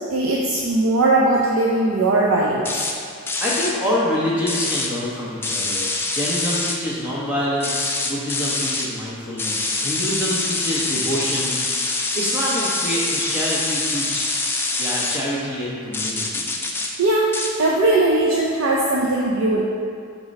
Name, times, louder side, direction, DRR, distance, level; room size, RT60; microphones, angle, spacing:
voice 1, 0.1-2.7 17.0-17.3 17.6-19.6, right 2 dB, 70° right, -4 dB, 0.5 m, -19 dB
sound 1, 2.6-2.9 3.3-3.7 4.5-4.9 5.4-6.8 7.6-8.9 9.4-15.2 15.9-16.9 17.3-17.5, left 3 dB, 10° left, 0.3 m, -25 dB
voice 2, 3.4-11.6 12.1-14.3 14.7-16.5, equal, 10° right, -8 dB, 1.1 m, -26 dB
4.5 x 4.0 x 5.3 m, 2.3 s
head